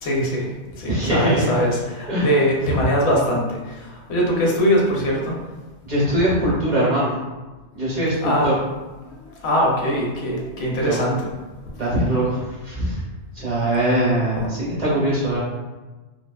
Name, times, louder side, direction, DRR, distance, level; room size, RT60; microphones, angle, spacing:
voice 1, 0.0-5.3 8.2-8.5 9.4-11.3 14.4-14.5, equal, 75° left, -2 dB, 0.8 m, -22 dB
voice 2, 0.9-1.5 2.1-2.3 2.7-2.8 5.8-7.1 7.7-8.5 10.8-11.1 11.8-13.0 13.3-15.4, right 1 dB, 40° right, -8 dB, 0.7 m, -21 dB
2.4 x 2.3 x 2.2 m, 1.2 s
omnidirectional pair, 1.2 m